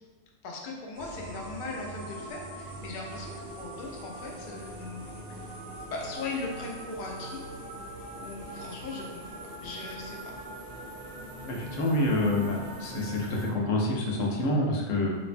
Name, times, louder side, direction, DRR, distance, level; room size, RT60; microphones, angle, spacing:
voice 1, 0.4-5.5 5.9-7.5 8.2-10.3, left 3 dB, 65° left, -1 dB, 0.5 m, -39 dB
sound 1, 0.9-13.5, right 1 dB, 65° right, 0.8 m, -42 dB
voice 2, 11.4-15.1, left 1 dB, 85° left, -2 dB, 1.0 m, -27 dB
3.1 x 2.1 x 2.5 m, 1.3 s
omnidirectional pair, 1.3 m